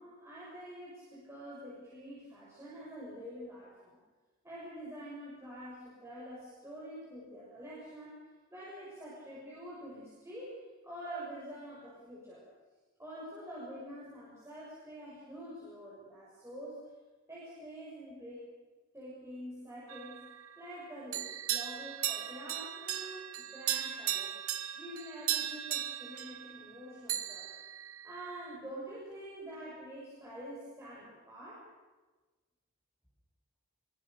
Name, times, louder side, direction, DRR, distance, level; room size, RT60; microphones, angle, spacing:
voice 1, 0.0-4.0 4.4-8.2 8.5-12.5 13.0-16.8 17.3-18.6 18.9-20.3 20.6-24.3 24.7-27.5 28.0-31.7, equal, 10° right, -7 dB, 6.7 m, -46 dB
sound 1, 19.9-20.7 21.1-26.8 27.1-28.5, right 11 dB, 80° right, 1.5 m, -37 dB
25.5 x 23.5 x 6.7 m, 1.2 s
head